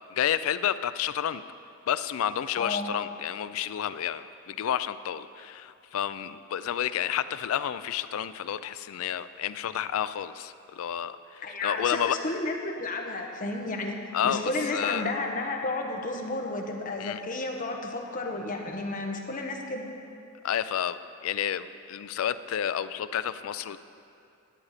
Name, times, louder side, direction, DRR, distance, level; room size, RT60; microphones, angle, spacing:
voice 1, 0.1-1.4 1.9-12.2 14.1-15.1 17.0-17.2 20.4-23.8, left 9 dB, 80° left, 14 dB, 0.3 m, -30 dB
voice 2, 2.6-2.9 11.4-14.0 14.2-19.8, left 2 dB, 40° left, 2 dB, 1.0 m, -32 dB
11.0 x 9.6 x 4.1 m, 2.6 s
head